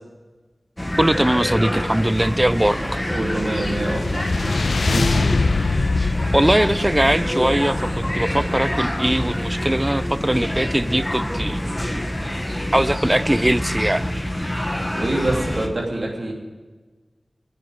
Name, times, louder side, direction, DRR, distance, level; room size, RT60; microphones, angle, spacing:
sound 1, 0.8-15.7, left 1 dB, 15° left, 1.1 m, -26 dB
voice 1, 1.0-3.0 6.3-11.6 12.7-14.1, right 1 dB, 15° right, 16 dB, 0.3 m, -20 dB
sound 2, 2.4-11.1, equal, 55° left, 3.2 m, -40 dB
sound 3, 3.1-8.6, left 3 dB, 90° left, 0.3 m, -24 dB
voice 2, 3.1-4.3 4.8-5.4 14.9-16.3, right 1 dB, 50° right, -2 dB, 2.9 m, -25 dB
9.9 x 7.8 x 9.6 m, 1.3 s
wide cardioid pair, 80°, 0 cm